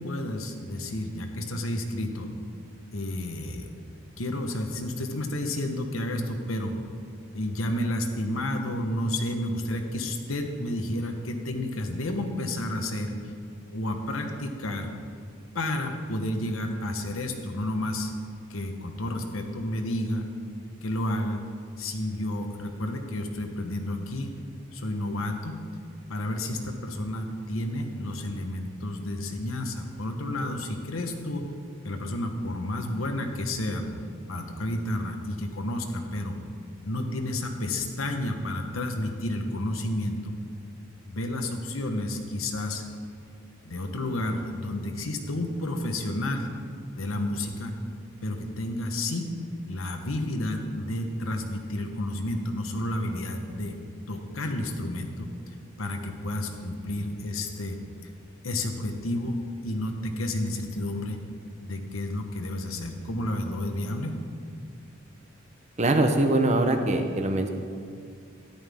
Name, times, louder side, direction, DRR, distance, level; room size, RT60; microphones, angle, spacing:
voice 1, 0.0-2.3 2.9-3.7 4.2-6.7 7.3-13.3 13.7-14.9 15.5-18.1 18.5-20.2 20.8-21.4 21.8-24.4 24.7-25.6 26.1-31.5 31.8-33.9 34.3-36.4 36.8-40.3 41.1-42.8 43.6-46.5 47.0-47.7 48.2-49.3 49.7-53.8 54.1-58.1 58.4-61.2 61.6-64.1, left 1 dB, 80° left, 4 dB, 1.2 m, -31 dB
voice 2, 65.8-67.5, right 2 dB, 35° right, 5 dB, 0.8 m, -22 dB
13.0 x 11.0 x 3.6 m, 2.2 s
head